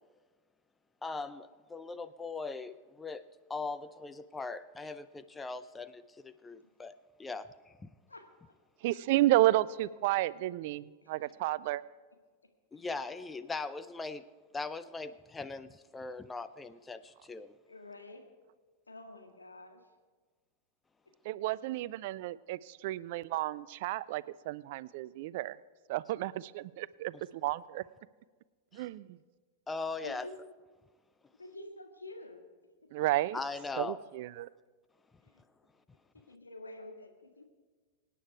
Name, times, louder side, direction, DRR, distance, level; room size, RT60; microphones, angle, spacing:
voice 1, 1.0-3.2 3.5-7.5 7.8-7.9 12.7-14.2 14.5-17.5 28.7-28.8 29.7-30.3 33.3-34.0, left 3 dB, 10° left, 13 dB, 0.6 m, -40 dB
voice 2, 8.8-11.8 21.2-25.6 25.9-27.8 28.7-29.2 32.9-33.4 33.8-34.5, right 16 dB, 50° right, 20 dB, 0.4 m, -31 dB
voice 3, 17.7-18.3 18.9-19.8 30.0-30.4 31.4-32.4 35.2-35.4 36.3-37.5, left 2 dB, 80° left, 4 dB, 1.8 m, -48 dB
24.5 x 9.3 x 4.7 m, 1.4 s
figure-of-eight pair, 90°, 0 cm